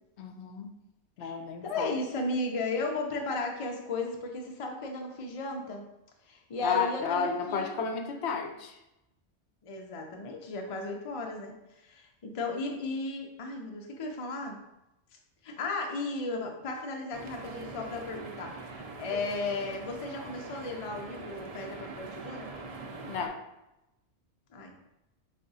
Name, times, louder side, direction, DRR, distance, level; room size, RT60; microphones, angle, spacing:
voice 1, 0.2-0.7 1.2-1.9 6.6-8.8 23.1-23.4, left 5 dB, 75° left, 4 dB, 0.8 m, -32 dB
voice 2, 1.6-5.8 6.3-7.8 9.6-14.6 15.4-22.5 24.5-24.7, left 3 dB, 40° left, 2 dB, 0.5 m, -35 dB
sound 1, 17.1-23.3, right 3 dB, 50° right, 0.4 m, -43 dB
4.6 x 2.4 x 3.9 m, 0.92 s
omnidirectional pair, 1.2 m